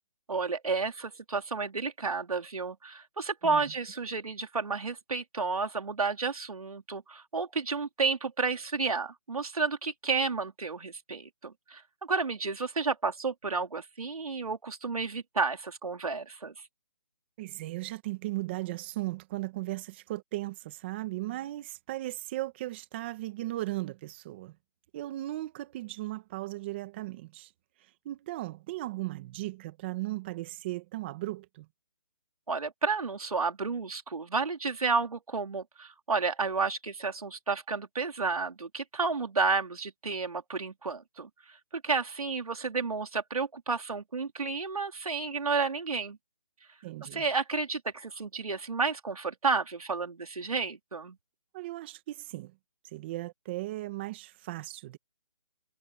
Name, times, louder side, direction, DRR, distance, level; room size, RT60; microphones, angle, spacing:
voice 1, 0.3-16.5 32.5-46.2 47.0-51.2, right 4 dB, 85° right, 3.7 m, -31 dB
voice 2, 17.4-24.5 24.9-27.5 28.1-31.7 46.8-47.2 51.5-52.5 52.9-55.0, right 17 dB, 20° right, 1.9 m, -37 dB
hypercardioid pair, 170°, 18 cm